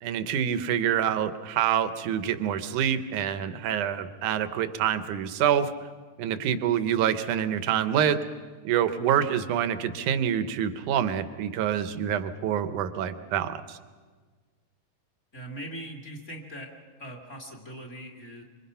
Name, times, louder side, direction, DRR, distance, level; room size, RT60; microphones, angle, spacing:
voice 1, 0.0-5.7 6.2-8.2 8.6-13.8, right 9 dB, 75° right, 11 dB, 2.3 m, -26 dB
voice 2, 15.3-16.7 17.0-18.4, right 1 dB, 25° left, 1 dB, 2.4 m, -40 dB
26.0 x 24.0 x 5.7 m, 1.5 s
omnidirectional pair, 3.7 m